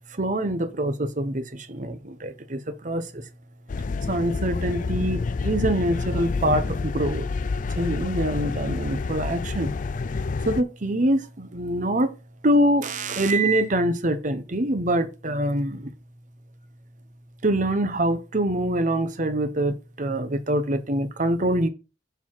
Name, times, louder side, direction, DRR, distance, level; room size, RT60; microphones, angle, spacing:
voice 1, 0.2-3.2 4.1-7.3 7.8-9.7 10.4-12.2 12.4-15.9 17.4-21.7, right 1 dB, 45° right, 1.1 m, -24 dB
sound 1, 3.7-10.6, left 4 dB, 45° left, 0.4 m, -28 dB
7.0 x 5.9 x 4.7 m
head